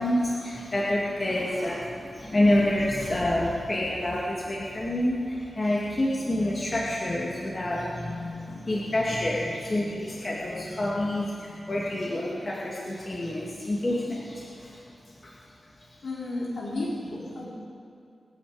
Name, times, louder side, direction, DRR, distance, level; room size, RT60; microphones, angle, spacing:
voice 1, 0.0-14.8 15.2-15.4, left 1 dB, 30° left, -5 dB, 2.3 m, -28 dB
voice 2, 16.0-17.5, left 2 dB, 70° left, -6 dB, 4.8 m, -32 dB
25.0 x 9.6 x 5.1 m, 2.5 s
wide cardioid pair, 135°, 0 cm